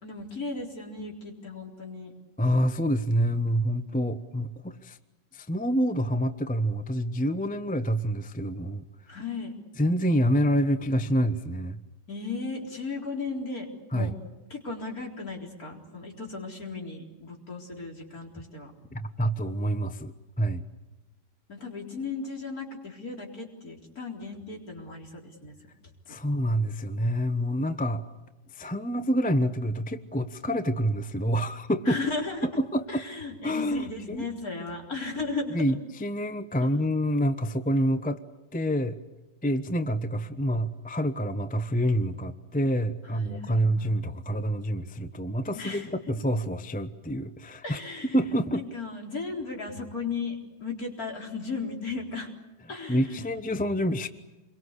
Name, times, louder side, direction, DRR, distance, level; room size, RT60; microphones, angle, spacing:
voice 1, 0.0-2.1 9.1-9.5 12.1-13.7 13.9-14.1 14.5-18.7 21.5-25.5 26.1-26.2 31.8-32.4 32.9-35.6 43.1-44.0 45.5-45.9 47.6-52.3 52.7-53.3, left 4 dB, 55° left, 1 dB, 4.5 m, -36 dB
voice 2, 2.4-5.0 5.3-8.8 9.8-11.8 13.9-14.1 18.9-20.6 26.1-28.0 28.5-32.0 32.6-33.0 33.4-34.3 35.5-38.2 38.5-39.0 39.4-47.8 48.1-48.6 52.9-54.1, equal, 5° left, 10 dB, 0.7 m, -27 dB
28.0 x 23.0 x 8.2 m, 1.1 s
omnidirectional pair, 1.9 m